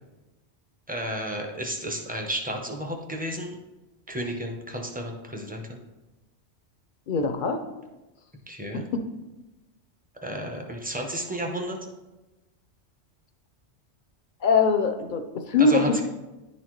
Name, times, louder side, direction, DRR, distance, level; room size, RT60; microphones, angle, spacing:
voice 1, 0.9-3.6 4.1-5.8 8.5-8.9 10.2-11.8 15.6-16.0, right 1 dB, 10° right, 2 dB, 0.6 m, -32 dB
voice 2, 7.1-7.6 8.7-9.0 14.4-16.0, left 4 dB, 55° left, 8 dB, 0.6 m, -22 dB
10.5 x 4.2 x 3.1 m, 1.0 s
omnidirectional pair, 1.2 m